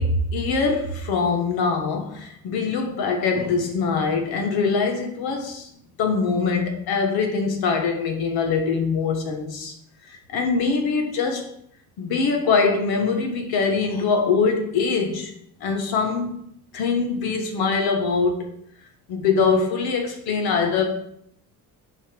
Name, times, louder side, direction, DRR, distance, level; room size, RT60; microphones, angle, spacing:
voice 1, 0.0-5.7 6.0-9.7 10.0-11.5 12.0-15.3 15.6-16.4 16.7-18.4 19.1-20.8, left 4 dB, 75° left, 3 dB, 1.5 m, -23 dB
7.7 x 4.1 x 5.3 m, 0.70 s
cardioid pair, 150°, 38 cm